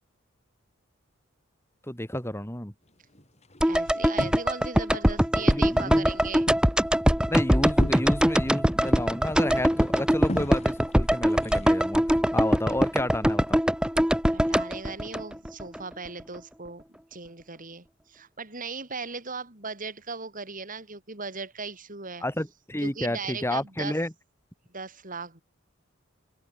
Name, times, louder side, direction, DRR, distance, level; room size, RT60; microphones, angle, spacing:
voice 1, 1.9-2.7 5.4-6.1 7.2-13.6 22.2-24.1, left 1 dB, 15° left, 4.6 m, -31 dB
sound 1, 2.9-4.8 5.1-5.8 6.1-12.1, equal, 35° left, 7.2 m, -40 dB
sound 2, 3.6-15.8 16.1-16.2, equal, 5° right, 2.3 m, -23 dB
voice 2, 3.7-6.5 14.3-16.8 17.1-22.2 22.8-23.9 24.7-25.4, right 4 dB, 45° right, 6.6 m, -38 dB
open air
head